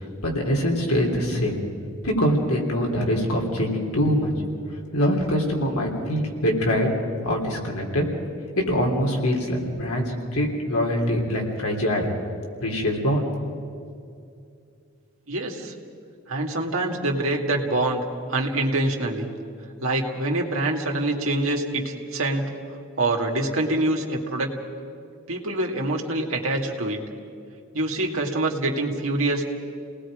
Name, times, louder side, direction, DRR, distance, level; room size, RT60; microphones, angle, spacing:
voice 1, 0.2-1.5 2.0-4.3 4.9-6.9 7.2-8.0 8.6-12.1 12.6-13.3, equal, 80° left, 0 dB, 3.5 m, -23 dB
voice 2, 15.3-15.7 16.3-18.0 18.3-19.3 19.8-22.5 23.0-24.5 25.3-27.0 27.7-29.5, right 2 dB, 70° right, 1 dB, 2.3 m, -25 dB
29.0 x 19.5 x 5.0 m, 2.4 s
head